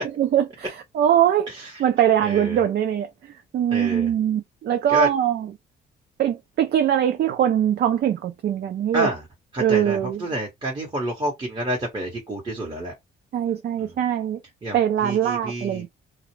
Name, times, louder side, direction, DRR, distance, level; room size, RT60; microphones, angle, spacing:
voice 1, 0.2-1.5 1.8-3.1 3.5-5.5 6.2-9.1 9.6-10.2 13.3-14.4 14.7-15.9, right 10 dB, 55° right, 0.4 m, -22 dB
voice 2, 1.5-1.8 2.2-2.6 3.7-4.1 4.9-5.1 8.9-9.3 9.5-12.9 13.8-14.0 14.6-15.8, right 1 dB, 25° right, 1.2 m, -29 dB
2.4 x 2.1 x 3.1 m
cardioid pair, 90°, 20 cm